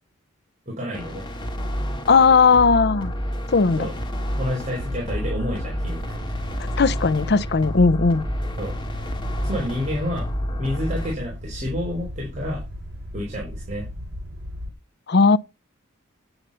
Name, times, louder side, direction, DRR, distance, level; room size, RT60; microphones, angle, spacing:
voice 1, 0.7-1.3 3.8-3.9 4.4-6.0 8.6-8.7 9.4-10.3 10.6-12.6 13.1-13.9, left 1 dB, 35° right, 4.5 m, -29 dB
sound 1, 0.9-11.1, equal, 25° left, 2.3 m, -29 dB
voice 2, 2.1-3.1 3.5-3.9 6.8-8.2 15.1-15.4, left 4 dB, 55° left, 0.6 m, -17 dB
sound 2, 4.8-14.7, equal, 55° right, 7.4 m, -36 dB
9.7 x 9.0 x 5.6 m
head